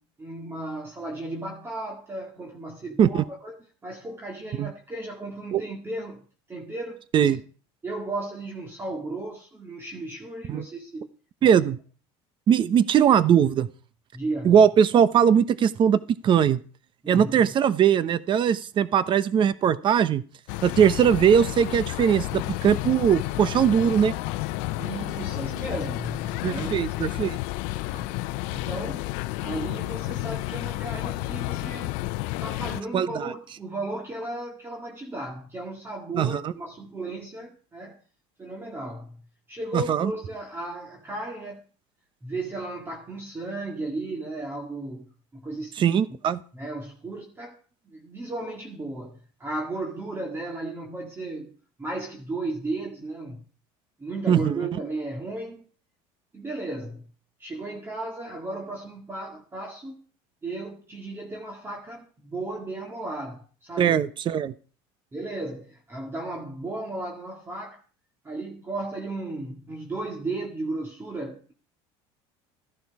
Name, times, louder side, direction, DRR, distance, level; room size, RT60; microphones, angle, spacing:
voice 1, 0.0-3.6 3.8-6.2 6.5-7.3 7.8-11.1 11.4-11.5 14.1-14.5 17.0-17.5 24.8-27.2 27.9-29.1 29.4-31.9 32.4-38.0 38.4-39.2 39.5-41.6 42.2-45.8 46.5-47.6 47.9-51.5 51.8-53.4 54.0-55.6 56.3-57.1 57.4-60.0 60.4-64.0 65.1-67.8 68.2-71.5, right 2 dB, 20° right, 2.0 m, -35 dB
voice 2, 11.4-11.8 12.5-13.7 14.4-16.6 17.1-20.2 20.6-24.1 26.4-27.4 32.9-33.3 36.1-36.5 39.7-40.1 45.8-46.4 54.3-54.7 63.8-64.5, right 8 dB, 40° right, 0.9 m, -20 dB
sound 1, 20.5-32.8, left 18 dB, 75° left, 0.7 m, -31 dB
14.5 x 11.5 x 4.8 m
cardioid pair, 125°, 13 cm